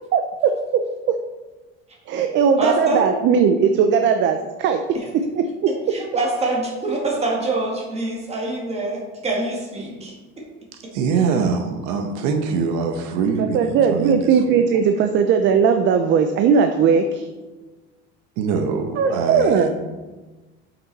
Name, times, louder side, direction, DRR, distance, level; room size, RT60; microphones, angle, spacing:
voice 1, 0.1-0.5 1.1-1.2 2.1-4.8 5.1-6.0 13.5-17.3 19.0-19.7, right 6 dB, 40° right, 6 dB, 0.5 m, -18 dB
voice 2, 2.6-3.0 5.9-10.1, right 2 dB, 20° right, -2 dB, 1.8 m, -24 dB
voice 3, 10.9-14.6 18.4-19.7, right 5 dB, 65° right, 5 dB, 0.9 m, -23 dB
8.1 x 6.0 x 4.1 m, 1.2 s
cardioid pair, 160°, 31 cm